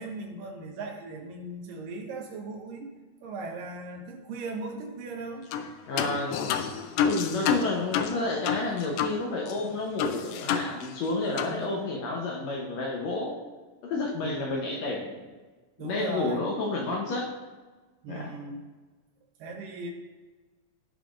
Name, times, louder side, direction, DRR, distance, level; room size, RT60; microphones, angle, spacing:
voice 1, 0.0-2.9 3.2-5.5 7.0-7.1 11.5-12.2 14.2-14.8 15.8-16.4 18.0-18.6 19.4-19.9, right 3 dB, 85° right, 2 dB, 2.8 m, -38 dB
sound 1, 5.5-5.7 6.0-9.2 9.5-9.6 10.0-11.1 11.4-11.6, left 7 dB, 90° left, 2.3 m, -29 dB
voice 2, 5.9-6.5 7.0-13.4 13.8-15.2 15.8-17.3 18.1-18.3, left 3 dB, 70° left, 0 dB, 1.8 m, -30 dB
14.5 x 5.8 x 2.5 m, 1.3 s
omnidirectional pair, 3.8 m